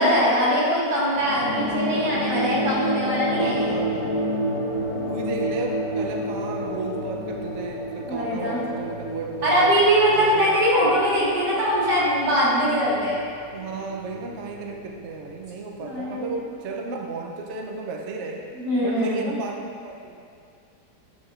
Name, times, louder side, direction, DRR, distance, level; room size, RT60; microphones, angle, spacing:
voice 1, 0.0-3.7 8.1-8.6 9.4-13.2 15.8-16.2 18.5-19.3, equal, 85° right, -8 dB, 2.3 m, -22 dB
sound 1, 1.1-16.0, equal, 50° left, 1.1 m, -30 dB
voice 2, 3.4-4.5 5.1-9.7 10.1-11.0 13.5-18.4 18.8-20.2, right 3 dB, 60° right, 1 dB, 0.7 m, -34 dB
9.8 x 5.1 x 2.4 m, 2.4 s
omnidirectional pair, 1.8 m